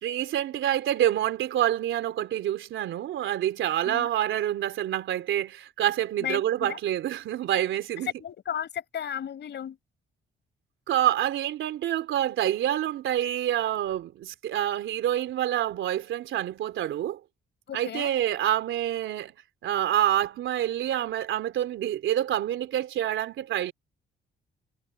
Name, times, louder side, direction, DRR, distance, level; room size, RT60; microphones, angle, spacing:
voice 1, 0.0-8.1 10.9-17.2 17.7-19.3 19.6-23.7, right 12 dB, 80° right, 3.6 m, -27 dB
voice 2, 6.2-6.8 8.2-9.8 17.7-18.1, left 9 dB, 60° left, 4.6 m, -34 dB
cardioid pair, 90°, 20 cm